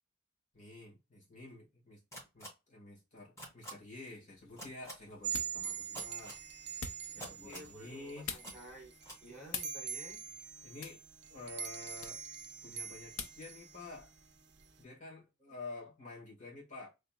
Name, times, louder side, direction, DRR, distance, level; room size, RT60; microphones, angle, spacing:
voice 1, 0.5-2.0 2.3-8.3 10.6-11.0 11.3-12.2 12.6-14.1 14.8-16.9, left 3 dB, 35° left, 1.8 m, -50 dB
sound 1, 2.1-2.5 3.4-3.7 4.6-4.9 5.9-6.4 7.2-7.7 8.4-8.5 9.0-9.2, equal, 15° left, 2.1 m, -46 dB
sound 2, 4.3-13.5, left 6 dB, 85° left, 0.7 m, -49 dB
sound 3, 5.2-14.8, right 7 dB, 55° right, 0.5 m, -44 dB
voice 2, 7.1-8.9 9.2-10.3, right 1 dB, ahead, 1.7 m, -53 dB
3.9 x 3.3 x 2.4 m
head